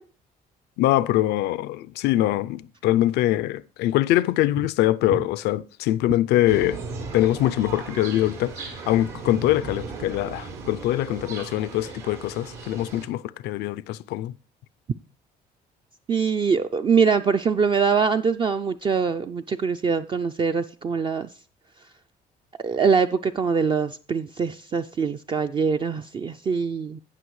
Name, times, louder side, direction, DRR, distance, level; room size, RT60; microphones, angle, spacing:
voice 1, 0.8-6.8 7.1-14.3, left 14 dB, 80° left, 0.4 m, -23 dB
sound 1, 6.5-13.1, right 4 dB, 80° right, 3.4 m, -37 dB
voice 2, 16.1-21.3 22.6-27.0, right 5 dB, 30° right, 0.4 m, -23 dB
17.5 x 6.0 x 3.1 m
cardioid pair, 110°, 17 cm